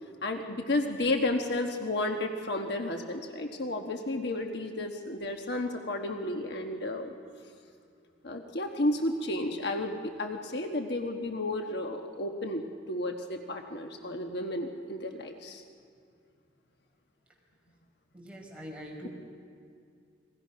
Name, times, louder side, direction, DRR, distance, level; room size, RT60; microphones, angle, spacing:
voice 1, 0.2-7.1 8.2-15.6, left 1 dB, 55° left, 4 dB, 1.3 m, -32 dB
voice 2, 18.1-19.1, equal, 5° right, -2 dB, 4.9 m, -43 dB
30.0 x 22.0 x 5.8 m, 2.4 s
head